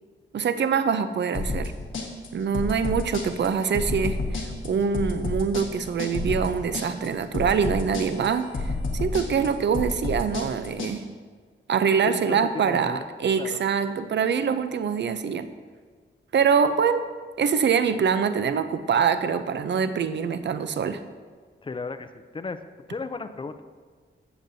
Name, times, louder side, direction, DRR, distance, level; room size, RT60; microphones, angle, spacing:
voice 1, 0.3-1.7 2.3-11.0 11.7-15.5 16.3-17.1 17.4-21.0, right 6 dB, 65° right, 11 dB, 0.5 m, -24 dB
sound 1, 1.3-10.9, left 3 dB, 90° left, 1.4 m, -30 dB
voice 2, 12.0-13.1 13.3-13.6 21.6-22.6 22.9-23.6, left 4 dB, 25° left, 10 dB, 0.4 m, -35 dB
15.0 x 7.2 x 2.7 m, 1.5 s
wide cardioid pair, 120°, 20 cm